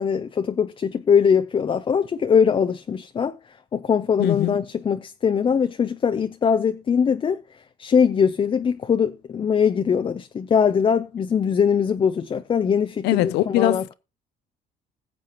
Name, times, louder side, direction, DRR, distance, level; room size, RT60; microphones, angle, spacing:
voice 1, 0.0-3.3 3.7-7.4 7.8-13.8, left 7 dB, 30° left, 0.6 m, -21 dB
voice 2, 4.2-4.6 13.0-13.9, left 15 dB, 85° left, 0.7 m, -22 dB
20.5 x 7.5 x 3.0 m
cardioid pair, 110°, 17 cm